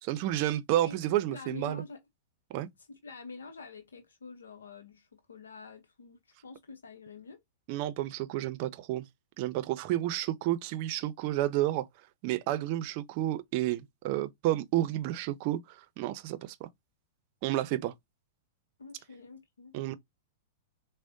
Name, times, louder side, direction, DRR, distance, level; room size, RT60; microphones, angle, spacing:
voice 1, 0.0-1.8 2.5-2.7 7.7-9.0 9.4-11.9 12.2-16.7 17.4-17.9 19.7-19.9, right 14 dB, 50° right, 0.5 m, -31 dB
voice 2, 1.3-2.0 2.9-7.4 18.8-19.8, left 4 dB, 80° left, 0.7 m, -47 dB
6.0 x 2.1 x 2.6 m
hypercardioid pair, 105°, 0 cm